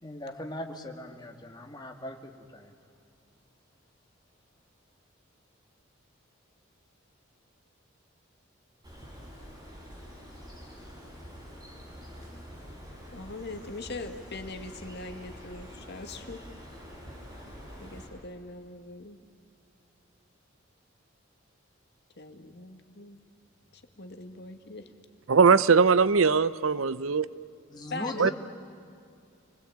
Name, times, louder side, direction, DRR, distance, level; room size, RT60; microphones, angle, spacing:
voice 1, 0.0-2.7 27.7-28.3, left 1 dB, 20° left, 2.3 m, -39 dB
Bird, 8.8-18.1, equal, 20° right, 7.7 m, -46 dB
voice 2, 13.1-16.4 17.8-19.2 22.2-23.2 23.7-24.9 27.9-28.3, left 2 dB, 55° left, 2.0 m, -41 dB
voice 3, 25.3-27.3 28.2-28.3, right 5 dB, 85° right, 0.7 m, -20 dB
29.5 x 21.0 x 8.7 m
head